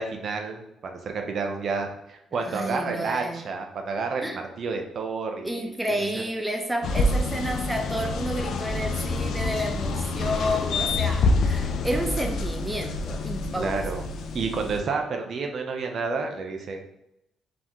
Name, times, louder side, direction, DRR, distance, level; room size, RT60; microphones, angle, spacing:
voice 1, 0.0-6.0 13.5-14.0 14.3-16.8, right 4 dB, 55° right, 4 dB, 0.6 m, -30 dB
voice 2, 2.4-3.4 4.2-4.4 5.4-13.9, equal, 10° right, 4 dB, 0.6 m, -30 dB
sound 1, 6.8-14.8, left 3 dB, 70° left, 0.5 m, -27 dB
4.0 x 3.6 x 3.0 m, 0.82 s
cardioid pair, 90°, 0 cm